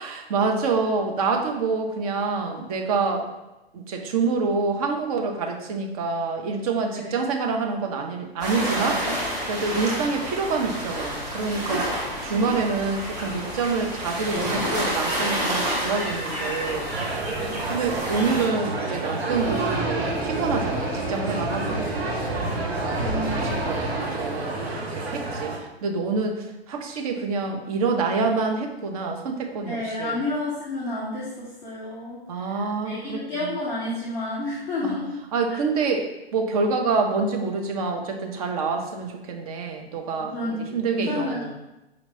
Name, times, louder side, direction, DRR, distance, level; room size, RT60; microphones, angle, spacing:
voice 1, 0.0-3.3 3.7-9.1 9.5-16.9 17.7-30.2 32.3-33.5 34.8-35.0 35.3-40.3 40.7-41.5, right 4 dB, 35° right, 3 dB, 0.6 m, -27 dB
sound 1, 8.4-18.5, equal, 10° right, 1.1 m, -29 dB
voice 2, 12.3-12.9 17.4-17.7 21.7-22.5 23.0-23.8 29.6-35.2 40.2-41.5, left 2 dB, 10° left, -8 dB, 0.3 m, -31 dB
sound 2, 16.9-25.6, right 2 dB, 80° right, 0.8 m, -30 dB
sound 3, 19.3-24.7, right 1 dB, 55° right, 1.2 m, -30 dB
5.0 x 2.9 x 2.7 m, 0.97 s
figure-of-eight pair, 110°, 31 cm